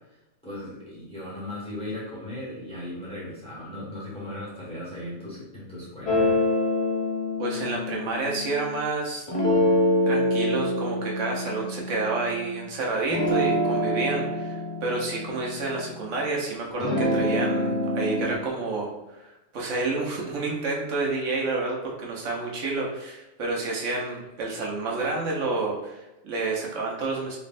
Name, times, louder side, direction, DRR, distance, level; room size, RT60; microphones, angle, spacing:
voice 1, 0.4-6.1, left 1 dB, 5° left, -9 dB, 1.4 m, -37 dB
sound 1, 6.1-8.7 9.3-12.7 13.1-16.3 16.7-18.4, left 1 dB, 35° left, 0.6 m, -26 dB
voice 2, 7.4-9.2 10.1-27.4, right 3 dB, 85° right, -2 dB, 1.2 m, -29 dB
3.6 x 3.3 x 2.5 m, 1.0 s
omnidirectional pair, 1.2 m